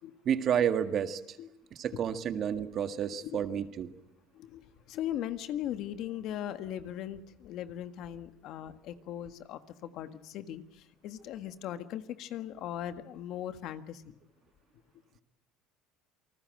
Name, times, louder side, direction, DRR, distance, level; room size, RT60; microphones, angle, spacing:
voice 1, 0.3-1.4 1.7-3.9, right 8 dB, 45° right, 9 dB, 1.8 m, -30 dB
voice 2, 3.0-3.4 4.3-14.2, left 11 dB, 60° left, 10 dB, 1.6 m, -39 dB
28.0 x 19.5 x 7.8 m, 0.84 s
cardioid pair, 115°, 0 cm